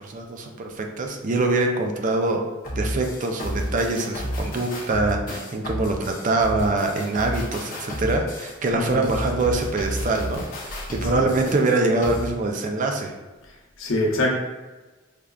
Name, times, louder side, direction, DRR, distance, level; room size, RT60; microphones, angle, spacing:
voice 1, 0.0-2.4 2.7-13.1, right 2 dB, 40° right, 3 dB, 0.4 m, -24 dB
sound 1, 2.6-12.3, equal, 45° left, 0.7 m, -31 dB
voice 2, 8.7-9.1 11.0-11.3 13.8-14.3, left 1 dB, 85° left, -2 dB, 0.8 m, -25 dB
4.9 x 2.2 x 2.3 m, 1.2 s
head